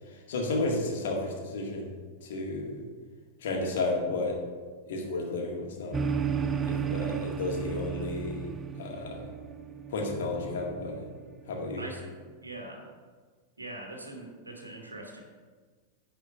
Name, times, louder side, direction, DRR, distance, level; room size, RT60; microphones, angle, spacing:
voice 1, 0.1-1.9 2.2-2.8 3.4-4.4 4.9-6.0 6.6-9.3 9.9-11.1 11.5-11.8, left 2 dB, 60° left, 0 dB, 1.9 m, -32 dB
sound 1, 5.9-11.5, right 7 dB, 20° right, 0.5 m, -34 dB
voice 2, 11.8-12.1 12.4-12.9 13.6-15.2, right 1 dB, 80° right, 2 dB, 1.5 m, -42 dB
9.6 x 4.3 x 7.6 m, 1.5 s
figure-of-eight pair, 90°, 0 cm